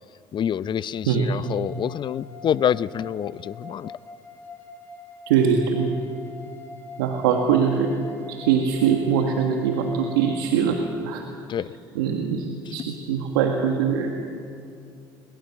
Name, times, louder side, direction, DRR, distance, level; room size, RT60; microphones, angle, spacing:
voice 1, 0.3-3.9 11.5-11.7, left 9 dB, 45° left, 18 dB, 0.6 m, -26 dB
sound 1, 1.3-10.7, left 2 dB, 20° left, 3.9 m, -43 dB
voice 2, 5.3-5.9 7.0-7.9 8.3-10.8 11.0-11.2 12.0-14.1, right 7 dB, 85° right, 3 dB, 1.7 m, -22 dB
22.0 x 21.0 x 7.3 m, 2.5 s
hypercardioid pair, 70°, 11 cm